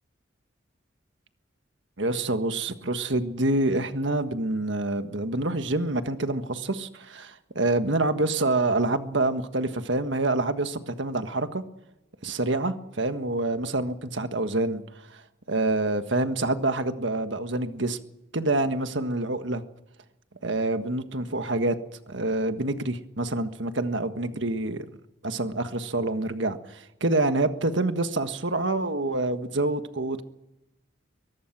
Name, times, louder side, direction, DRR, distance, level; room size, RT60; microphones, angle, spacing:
voice 1, 2.0-11.6 12.2-14.8 15.5-18.0 18.3-19.6 20.4-21.8 22.1-24.8 25.2-30.2, right 2 dB, 70° right, 9 dB, 1.6 m, -27 dB
23.5 x 19.5 x 6.1 m, 0.92 s
head